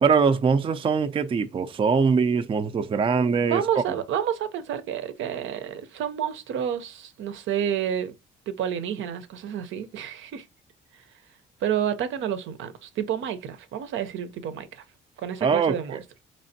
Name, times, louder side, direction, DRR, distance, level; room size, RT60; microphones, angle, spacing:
voice 1, 0.0-3.8 15.4-16.0, right 5 dB, 25° right, 0.4 m, -22 dB
voice 2, 3.4-8.2 8.5-10.5 10.9-11.0 11.6-14.8 15.2-16.2, right 9 dB, 75° right, 0.6 m, -30 dB
4.3 x 3.2 x 2.7 m
cardioid pair, 90°, 20 cm